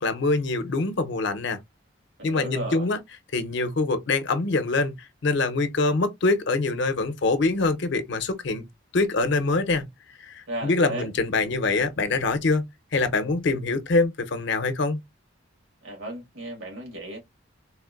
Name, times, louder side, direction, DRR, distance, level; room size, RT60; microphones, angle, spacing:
voice 1, 0.0-1.6 2.2-3.0 3.3-8.6 8.9-9.9 10.2-15.0, left 3 dB, 65° left, 0.6 m, -24 dB
voice 2, 2.2-2.9 10.5-11.1 15.8-17.2, right 1 dB, 90° right, 1.7 m, -35 dB
3.4 x 2.5 x 2.4 m
head